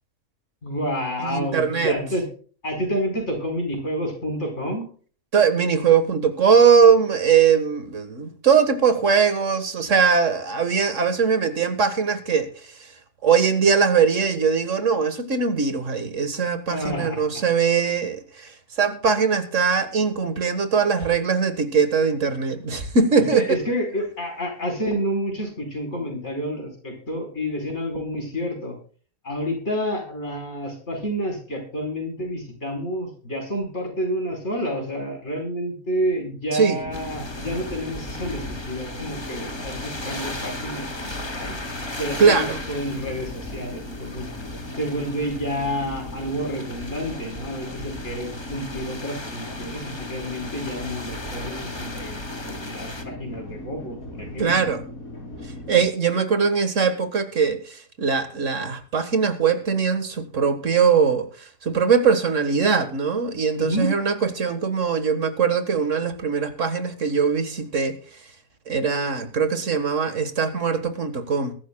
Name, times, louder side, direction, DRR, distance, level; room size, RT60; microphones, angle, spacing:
voice 1, 0.6-2.2 2.6-4.9 16.7-17.4 23.2-28.8 29.2-41.6 42.0-44.3 44.8-54.7 63.6-63.9, equal, 50° left, 5.2 m, -29 dB
voice 2, 1.2-2.0 5.3-12.5 13.2-18.5 18.8-23.4 36.5-36.8 42.2-42.6 54.4-54.8 55.7-68.0 68.7-71.5, right 6 dB, 60° right, 1.9 m, -21 dB
sound 1, 36.8-55.9, left 1 dB, 80° left, 5.1 m, -38 dB
sound 2, 36.9-53.0, left 2 dB, 20° left, 1.5 m, -37 dB
22.0 x 12.0 x 2.3 m
omnidirectional pair, 1.5 m